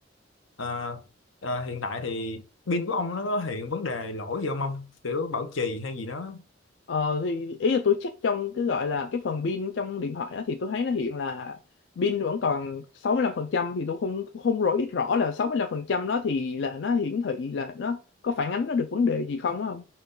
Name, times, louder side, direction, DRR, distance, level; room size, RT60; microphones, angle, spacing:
voice 1, 0.6-1.0 1.4-6.4, left 3 dB, 85° left, 0.8 m, -30 dB
voice 2, 6.9-11.6 12.0-19.9, left 5 dB, 65° left, 0.4 m, -27 dB
5.8 x 2.3 x 3.7 m
head